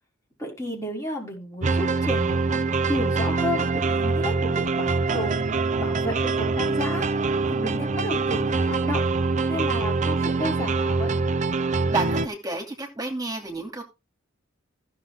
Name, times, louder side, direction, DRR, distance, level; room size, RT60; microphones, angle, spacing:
voice 1, 0.4-5.4 5.8-9.0 9.4-11.2, left 1 dB, 15° left, -2 dB, 5.1 m, -32 dB
sound 1, 1.6-12.3, right 3 dB, 35° right, 0.6 m, -24 dB
voice 2, 11.9-13.8, right 2 dB, 20° right, 2 dB, 2.5 m, -30 dB
15.5 x 6.8 x 3.5 m, 0.26 s
head